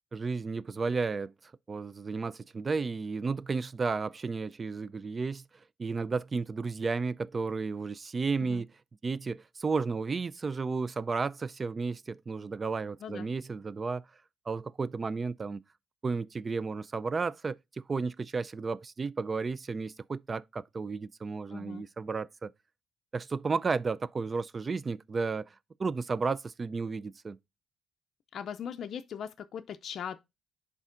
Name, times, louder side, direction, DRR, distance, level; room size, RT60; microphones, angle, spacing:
voice 1, 0.1-5.4 5.8-8.7 9.0-14.1 14.5-15.6 16.0-17.6 17.9-22.5 23.1-25.5 25.8-27.4, right 4 dB, 35° right, 0.3 m, -33 dB
voice 2, 21.5-21.8 28.3-30.2, left 8 dB, 60° left, 0.4 m, -39 dB
10.5 x 3.6 x 2.5 m
cardioid pair, 90°, 0 cm